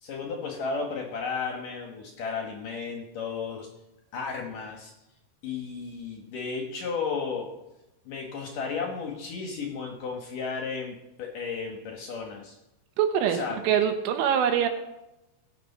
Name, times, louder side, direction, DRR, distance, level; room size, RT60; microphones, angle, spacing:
voice 1, 0.0-3.7 4.1-4.9 5.4-7.5 8.1-12.6 13.3-13.6, left 5 dB, 65° left, 1 dB, 2.2 m, -33 dB
voice 2, 13.0-13.4 13.6-14.7, right 9 dB, 85° right, 5 dB, 3.8 m, -23 dB
20.0 x 6.6 x 5.5 m, 0.90 s
omnidirectional pair, 5.6 m